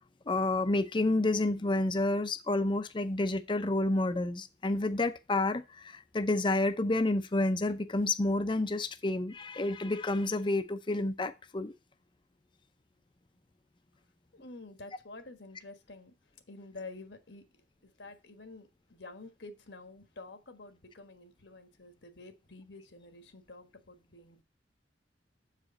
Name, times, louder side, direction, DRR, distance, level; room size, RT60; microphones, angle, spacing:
voice 1, 0.3-11.7, left 2 dB, 25° left, 0.6 m, -29 dB
voice 2, 14.3-16.1 16.5-17.4 17.8-24.4, left 3 dB, 80° left, 1.5 m, -49 dB
7.6 x 4.9 x 5.2 m
head